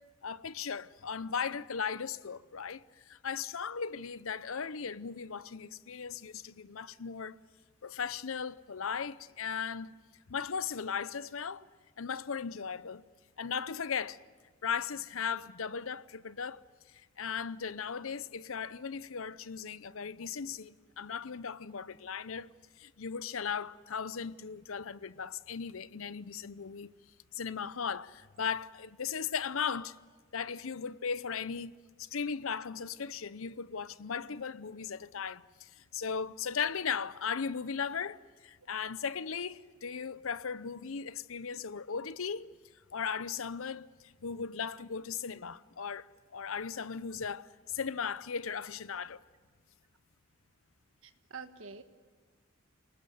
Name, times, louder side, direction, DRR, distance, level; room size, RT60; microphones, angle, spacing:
voice 1, 0.2-7.4 7.8-9.9 10.3-11.7 12.0-13.0 13.4-14.2 14.6-16.6 17.2-22.5 22.8-26.9 27.3-30.0 30.3-42.5 42.9-43.9 44.2-49.2, left 6 dB, 75° left, 0.7 m, -37 dB
voice 2, 51.0-51.8, right 5 dB, 70° right, 1.6 m, -46 dB
29.0 x 20.0 x 7.9 m
head